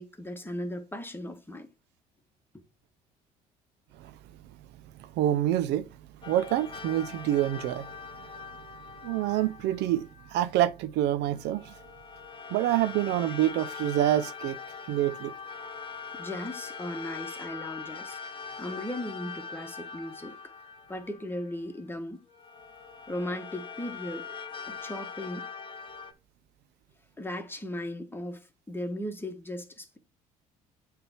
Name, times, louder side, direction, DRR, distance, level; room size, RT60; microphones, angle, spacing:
voice 1, 0.0-1.7 16.1-20.5 20.9-22.2 23.1-24.3 24.7-25.5 27.2-30.0, left 1 dB, 10° left, 1.5 m, -37 dB
voice 2, 5.2-5.9 6.3-7.9 9.0-11.7 12.5-14.6 14.9-15.3, right 13 dB, 65° right, 0.5 m, -27 dB
sound 1, 6.2-10.4 11.3-21.8 22.3-26.1, left 5 dB, 25° left, 1.3 m, -42 dB
7.6 x 3.4 x 4.5 m
hypercardioid pair, 60°, 19 cm